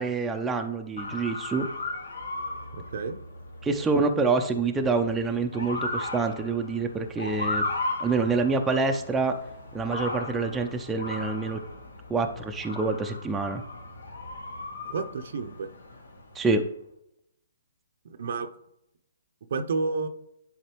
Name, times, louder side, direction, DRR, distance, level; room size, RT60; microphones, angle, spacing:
voice 1, 0.0-1.7 3.6-7.7 8.0-9.4 9.7-11.6 12.1-13.6 16.3-16.6, right 4 dB, 10° right, 3 dB, 0.5 m, -26 dB
Motor vehicle (road) / Siren, 1.0-16.5, left 2 dB, 75° left, 1.1 m, -36 dB
voice 2, 2.7-3.2 14.8-15.7 18.0-18.5 19.5-20.1, right 4 dB, 55° right, 8 dB, 0.6 m, -30 dB
10.5 x 4.0 x 3.0 m, 0.81 s
figure-of-eight pair, 130°, 0 cm